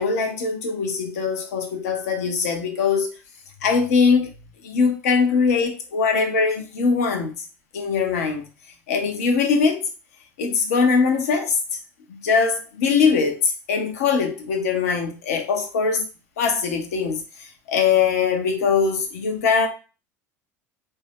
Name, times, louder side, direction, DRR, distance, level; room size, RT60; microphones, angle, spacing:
voice 1, 0.0-3.1 3.6-4.3 4.6-7.4 7.7-8.5 8.9-9.8 10.4-11.6 12.1-16.1 16.4-19.7, left 5 dB, 85° left, 0.7 m, -21 dB
2.6 x 2.0 x 3.4 m
hypercardioid pair, 80°, 8 cm